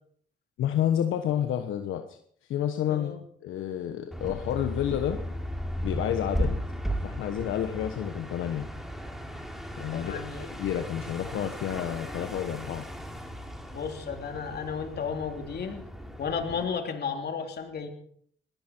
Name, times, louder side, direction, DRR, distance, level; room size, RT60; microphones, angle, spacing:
voice 1, 0.6-2.2 2.5-3.1 3.4-5.2 5.8-6.5 7.0-8.7 9.8-10.2 10.5-12.9, left 10 dB, 80° left, 6 dB, 1.3 m, -29 dB
voice 2, 2.9-3.2 9.9-10.5 13.7-15.8 16.2-17.9, left 6 dB, 55° left, 4 dB, 3.3 m, -33 dB
sound 1, 4.1-16.6, equal, ahead, 3.2 m, -36 dB
20.5 x 15.0 x 4.6 m, 0.63 s
cardioid pair, 90°, 20 cm